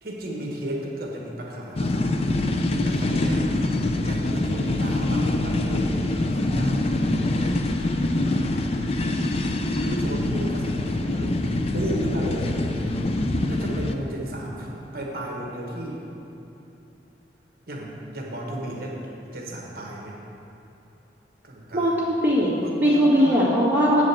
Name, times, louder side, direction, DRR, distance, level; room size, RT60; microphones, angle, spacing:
voice 1, 0.0-2.1 2.7-3.6 4.0-7.5 9.8-12.9 13.5-16.0 17.7-19.0 19.3-20.2 21.4-21.9 22.6-23.4, right 1 dB, 55° right, -2 dB, 1.3 m, -34 dB
sound 1, 1.8-14.0, left 2 dB, 35° left, 0.4 m, -24 dB
voice 2, 21.7-22.5 22.8-24.0, equal, 10° right, -9 dB, 1.9 m, -19 dB
7.7 x 5.1 x 7.1 m, 2.8 s
head